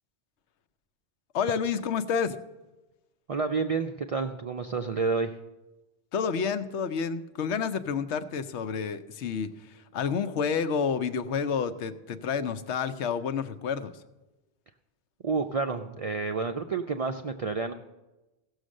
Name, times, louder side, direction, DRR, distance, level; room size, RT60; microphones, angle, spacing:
voice 1, 1.3-2.4 6.1-13.9, left 6 dB, 80° left, 11 dB, 1.0 m, -29 dB
voice 2, 3.3-5.3 15.2-17.7, right 4 dB, 50° right, 6 dB, 0.4 m, -29 dB
15.5 x 6.5 x 6.4 m, 1.1 s
omnidirectional pair, 1.1 m